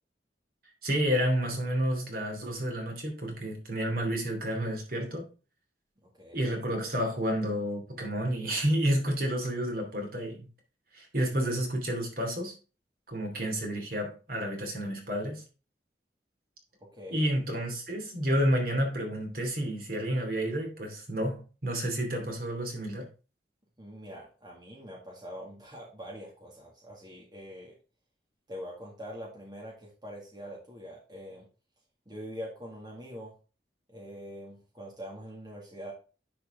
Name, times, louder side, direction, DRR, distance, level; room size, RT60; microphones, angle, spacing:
voice 1, 0.8-5.3 6.3-10.5 10.9-12.5 13.1-15.4 17.1-23.1, equal, 50° right, 2.6 m, -30 dB
voice 2, 16.8-17.2 23.8-27.8 28.5-31.5 32.1-33.3 33.9-35.9, equal, 20° right, 2.1 m, -44 dB
10.5 x 4.7 x 3.7 m
head